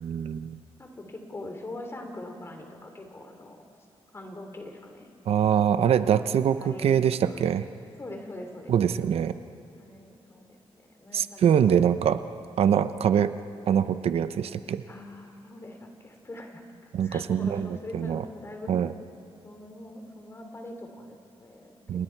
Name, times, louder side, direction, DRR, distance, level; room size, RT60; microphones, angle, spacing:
voice 1, 0.0-0.6 5.3-7.6 8.7-9.4 11.1-12.2 12.6-13.3 13.7-14.8 16.9-18.2 18.7-18.9 21.9-22.0, right 8 dB, 75° right, 12 dB, 0.7 m, -24 dB
voice 2, 0.8-3.6 4.1-5.1 6.2-7.4 8.0-8.7 9.8-11.8 14.9-16.6 17.0-18.9 19.4-22.0, left 1 dB, 25° left, 4 dB, 2.9 m, -43 dB
29.5 x 28.5 x 4.6 m, 2.7 s
wide cardioid pair, 155°, 10 cm